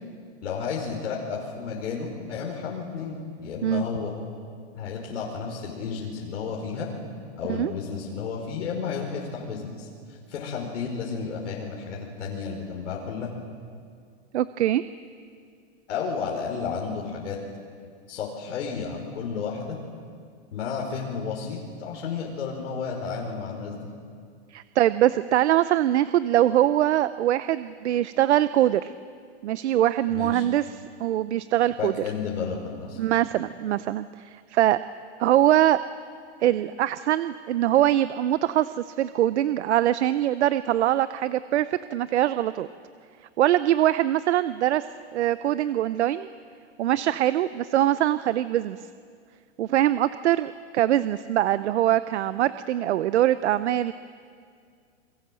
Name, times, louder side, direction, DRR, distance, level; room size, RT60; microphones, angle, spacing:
voice 1, 0.4-4.1 4.7-6.9 7.4-13.3 15.9-17.4 18.1-19.8 20.5-23.9 30.1-30.5 31.8-33.0, left 5 dB, 80° left, -2 dB, 5.2 m, -32 dB
voice 2, 14.3-14.8 24.5-28.9 29.4-31.9 33.0-34.8 35.2-35.8 36.4-42.7 43.4-44.8 45.1-46.3 46.8-48.8 49.6-53.9, right 12 dB, 70° right, 14 dB, 0.8 m, -23 dB
29.0 x 23.0 x 7.7 m, 2.2 s
supercardioid pair, 175°, 35 cm